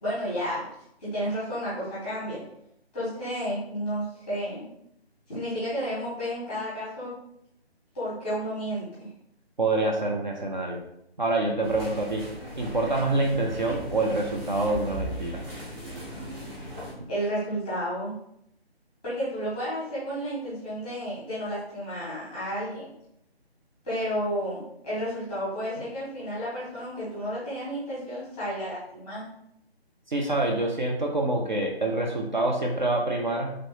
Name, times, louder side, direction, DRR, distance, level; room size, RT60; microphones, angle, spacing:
voice 1, 0.0-0.7 1.0-2.4 2.9-4.7 5.3-7.1 7.9-9.1 17.1-18.1 19.0-22.9 23.8-29.2, equal, 10° left, -10 dB, 0.8 m, -32 dB
voice 2, 9.6-10.8 11.2-12.2 12.6-15.4 30.1-33.6, right 2 dB, 50° right, 0 dB, 0.4 m, -26 dB
sound 1, 11.6-16.9, right 1 dB, 20° right, 0.9 m, -38 dB
3.1 x 2.6 x 3.0 m, 0.77 s
figure-of-eight pair, 155°, 32 cm